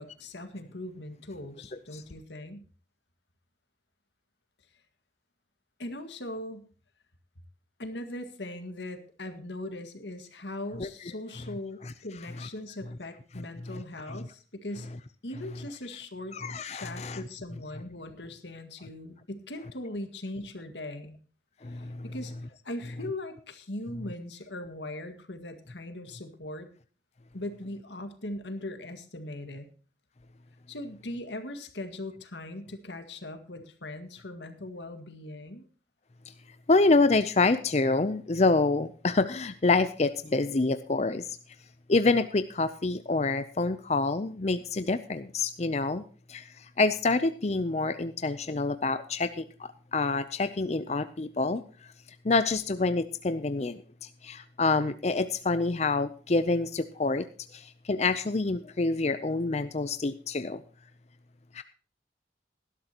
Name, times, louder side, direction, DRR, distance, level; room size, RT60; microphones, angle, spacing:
voice 1, 0.0-2.7 5.8-6.7 7.8-14.9 15.2-16.4 16.7-21.2 21.7-22.3 22.6-26.7 27.3-29.7 30.7-35.7, left 1 dB, 90° left, 8 dB, 1.9 m, -40 dB
voice 2, 16.3-17.2 21.6-22.1 36.7-41.4 41.9-46.0 46.3-51.6 52.2-57.3 57.5-60.6 61.5-61.6, left 3 dB, 40° left, 11 dB, 0.6 m, -27 dB
18.5 x 12.0 x 2.9 m, 0.39 s
head